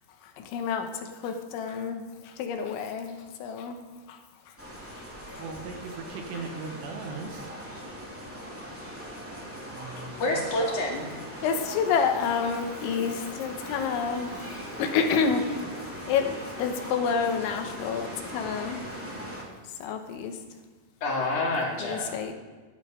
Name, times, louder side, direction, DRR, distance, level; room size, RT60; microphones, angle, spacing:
voice 1, 0.4-3.8 4.1-4.2 5.3-5.4 6.3-6.4 11.4-14.3 14.8-15.5 16.1-18.9 19.8-20.3 21.8-22.3, left 6 dB, 80° left, 5 dB, 3.5 m, -29 dB
sound 1, 4.6-19.4, equal, 5° right, 1.7 m, -40 dB
voice 2, 5.4-7.5 9.7-10.4, right 4 dB, 70° right, 4 dB, 3.2 m, -39 dB
voice 3, 10.2-11.1 21.0-22.1, left 2 dB, 50° left, -3 dB, 3.4 m, -28 dB
14.5 x 11.0 x 5.1 m, 1.3 s
omnidirectional pair, 5.3 m